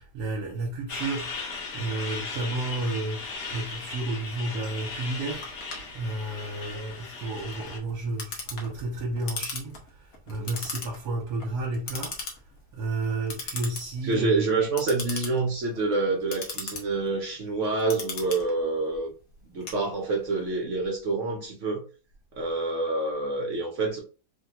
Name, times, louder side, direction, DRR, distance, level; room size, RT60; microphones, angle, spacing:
voice 1, 0.0-5.5 5.9-12.3 12.7-14.6, right 2 dB, 75° right, 1.3 m, -32 dB
Truck, 0.9-7.8, left 4 dB, 80° left, 1.5 m, -37 dB
Clock, 5.4-20.4, left 4 dB, 60° left, 1.2 m, -39 dB
voice 2, 14.0-19.1 19.5-21.8 22.3-24.0, right 3 dB, 60° right, 0.9 m, -27 dB
3.4 x 2.2 x 2.8 m
omnidirectional pair, 1.8 m